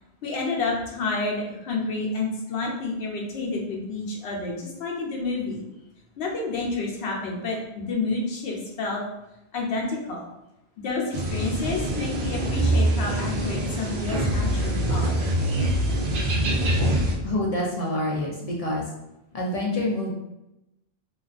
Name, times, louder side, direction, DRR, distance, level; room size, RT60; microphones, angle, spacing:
voice 1, 0.2-5.6 6.2-9.0 9.5-10.2 10.8-15.2, left 3 dB, 80° left, -2 dB, 0.9 m, -29 dB
sound 1, 11.1-17.1, right 1 dB, 60° right, 0.7 m, -24 dB
voice 2, 17.2-18.8 19.3-20.1, left 1 dB, 55° left, -2 dB, 0.4 m, -27 dB
2.4 x 2.3 x 2.4 m, 0.90 s
omnidirectional pair, 1.1 m